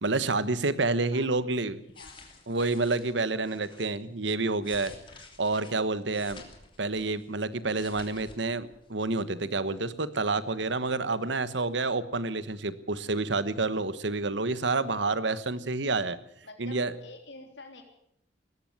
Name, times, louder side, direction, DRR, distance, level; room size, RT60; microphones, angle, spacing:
voice 1, 0.0-1.8 2.5-4.9 5.4-6.4 6.8-16.2 16.6-16.9, right 3 dB, 80° right, 14 dB, 1.3 m, -29 dB
sound 1, 1.7-3.9 4.4-7.3 7.6-8.4 8.7-8.9, left 4 dB, 25° left, 3.2 m, -51 dB
voice 2, 1.9-2.3 16.4-17.8, left 3 dB, 75° left, 4 dB, 3.5 m, -48 dB
19.0 x 15.0 x 9.4 m, 0.74 s
head